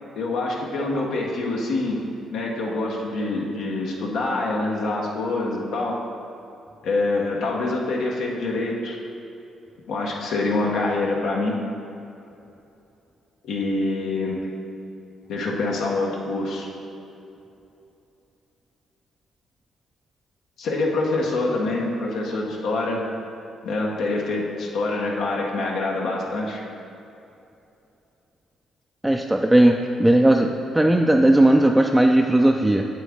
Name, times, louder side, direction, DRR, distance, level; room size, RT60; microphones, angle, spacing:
voice 1, 0.2-2.0 2.3-6.0 6.8-9.0 9.9-11.6 13.4-14.5 15.3-16.7 20.6-23.0 23.6-26.6, left 2 dB, 80° left, -2 dB, 1.0 m, -25 dB
voice 2, 29.0-32.9, right 1 dB, 10° right, 2 dB, 0.3 m, -17 dB
7.5 x 7.4 x 3.6 m, 2.7 s
cardioid pair, 90°, 0 cm